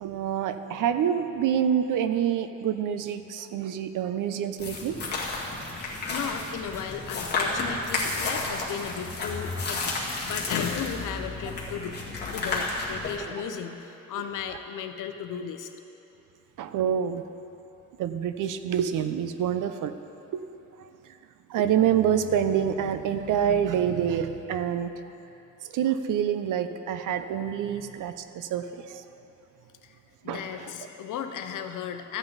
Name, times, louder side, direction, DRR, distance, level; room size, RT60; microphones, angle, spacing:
voice 1, 0.0-5.0 13.2-13.3 16.6-17.2 18.0-19.9 20.3-20.5 20.8-20.9 21.5-24.9 25.7-29.0 30.2-30.4, right 9 dB, 80° right, 10 dB, 0.6 m, -27 dB
sound 1, 4.6-13.2, left 3 dB, 35° left, 1.8 m, -31 dB
voice 2, 5.2-5.7 6.0-12.0 12.3-15.7 29.8-30.0 30.2-32.2, left 8 dB, 75° left, 7 dB, 0.8 m, -35 dB
14.5 x 8.9 x 4.0 m, 3.0 s
cardioid pair, 155°, 31 cm